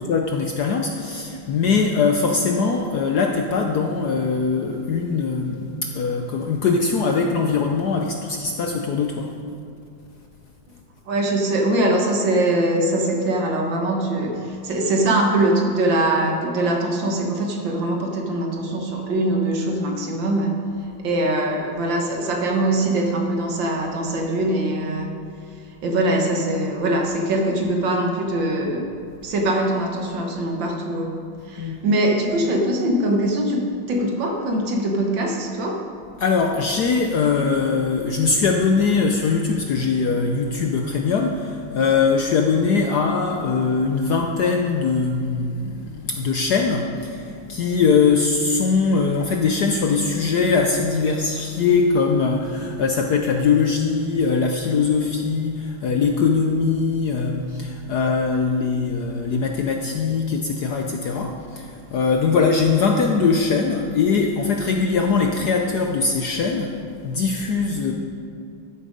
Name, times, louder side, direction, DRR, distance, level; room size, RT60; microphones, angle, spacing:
voice 1, 0.0-9.3 31.6-31.9 36.2-67.9, left 5 dB, 65° left, 3 dB, 1.0 m, -21 dB
voice 2, 11.1-20.6 21.0-25.1 25.8-28.9 29.2-31.2 31.5-35.8, right 1 dB, 65° right, 1 dB, 1.9 m, -22 dB
13.5 x 7.7 x 5.1 m, 2.5 s
omnidirectional pair, 2.3 m